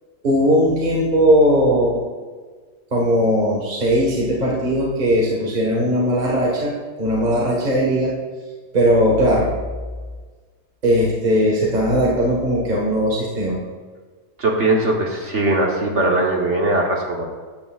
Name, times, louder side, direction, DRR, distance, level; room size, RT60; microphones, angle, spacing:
voice 1, 0.2-2.0 2.9-6.7 7.0-8.1 8.7-9.5 10.8-13.6, equal, 30° right, -3 dB, 1.5 m, -18 dB
voice 2, 14.4-17.3, right 2 dB, 50° right, 0 dB, 1.3 m, -20 dB
12.5 x 10.5 x 2.4 m, 1.5 s
omnidirectional pair, 1.7 m